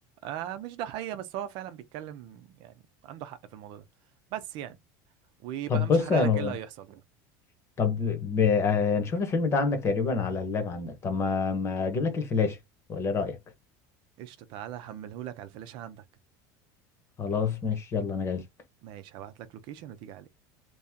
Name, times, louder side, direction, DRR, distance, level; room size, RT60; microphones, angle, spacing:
voice 1, 0.2-2.7 3.0-3.8 4.3-4.8 5.4-7.0 14.2-16.0 18.8-20.3, right 11 dB, 55° right, 0.6 m, -39 dB
voice 2, 5.7-6.5 7.8-12.6 12.9-13.4 17.2-18.4, left 5 dB, 30° left, 1.1 m, -26 dB
3.0 x 2.8 x 3.6 m
cardioid pair, 150°, 10 cm